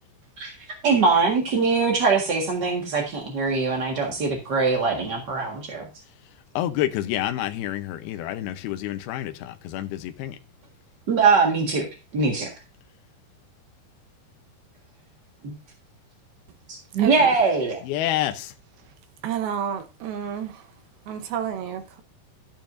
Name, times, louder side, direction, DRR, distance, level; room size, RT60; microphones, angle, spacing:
voice 1, 0.8-5.9 11.1-11.9 12.1-12.5 15.4-15.5 16.7-17.8, right 4 dB, 45° right, 1.3 m, -22 dB
voice 2, 6.6-10.4 17.8-18.5, left 13 dB, 75° left, 2.7 m, -28 dB
voice 3, 17.0-17.4 19.2-20.6 21.1-22.0, right 8 dB, 75° right, 2.7 m, -30 dB
12.5 x 8.9 x 2.6 m
omnidirectional pair, 4.7 m